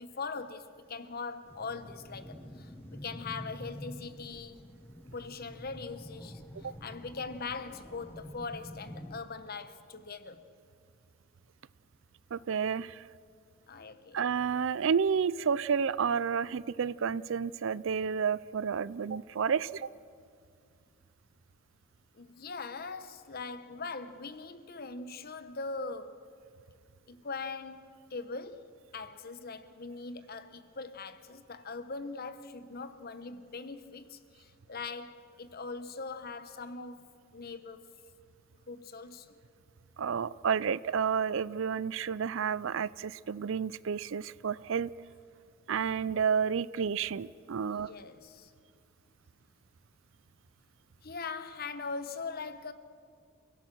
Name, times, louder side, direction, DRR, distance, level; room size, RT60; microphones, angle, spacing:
voice 1, 0.0-4.6 5.1-10.4 13.7-14.2 22.1-26.3 27.1-37.8 38.7-39.4 47.6-48.5 51.0-52.7, left 4 dB, 45° left, 1.0 m, -41 dB
sound 1, 1.4-9.2, equal, 10° left, 0.9 m, -47 dB
voice 2, 12.3-13.0 14.1-19.9 40.0-44.9 45.7-47.9, right 6 dB, 60° right, 0.4 m, -30 dB
29.5 x 17.0 x 6.2 m
head